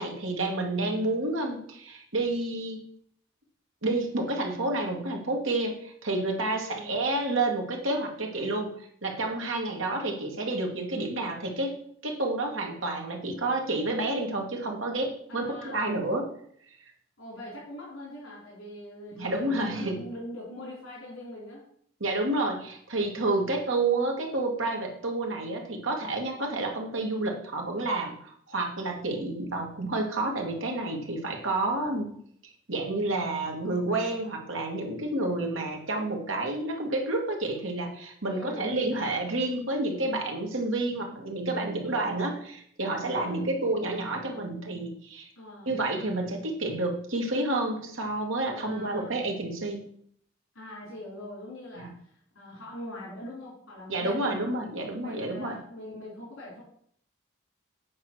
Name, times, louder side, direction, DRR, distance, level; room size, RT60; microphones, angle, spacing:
voice 1, 0.0-2.8 3.8-11.8 12.0-16.3 19.2-20.0 22.0-32.1 32.4-45.3 45.7-49.8 51.8-51.9 53.9-55.6, right 2 dB, 75° right, 1 dB, 2.0 m, -29 dB
voice 2, 6.5-7.0 15.3-15.9 17.2-21.6 38.2-38.7 43.0-43.4 45.4-45.8 48.5-49.2 50.5-54.4 55.0-56.6, left 1 dB, 80° left, -7 dB, 4.4 m, -42 dB
8.6 x 4.8 x 6.3 m, 0.64 s
head